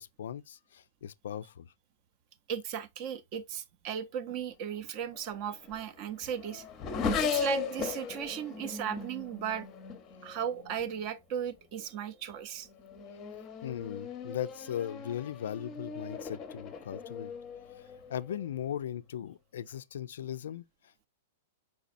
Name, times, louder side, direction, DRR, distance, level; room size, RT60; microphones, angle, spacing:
voice 1, 0.0-1.7 10.2-10.3 13.6-17.3 18.1-21.1, left 10 dB, 75° left, 0.3 m, -38 dB
voice 2, 2.5-6.6 7.2-9.7 10.2-12.7, right 8 dB, 35° right, 0.5 m, -36 dB
Race car auto racing / Accelerating revving vroom, 5.1-11.0 11.8-12.2 12.6-18.5, left 5 dB, 20° left, 0.6 m, -38 dB
4.8 x 4.1 x 2.5 m
supercardioid pair, 165°, 0 cm